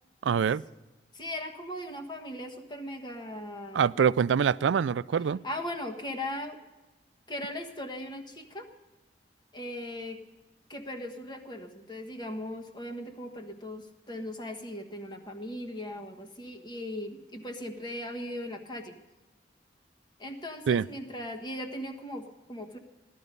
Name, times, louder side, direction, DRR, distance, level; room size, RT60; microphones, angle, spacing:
voice 1, 0.2-0.6 3.7-5.4 20.7-20.9, right 7 dB, 90° right, 0.4 m, -24 dB
voice 2, 1.1-3.9 5.4-6.6 7.3-8.7 9.5-10.2 10.7-18.9 20.2-22.8, left 1 dB, 25° left, 1.3 m, -38 dB
16.5 x 12.0 x 5.3 m
head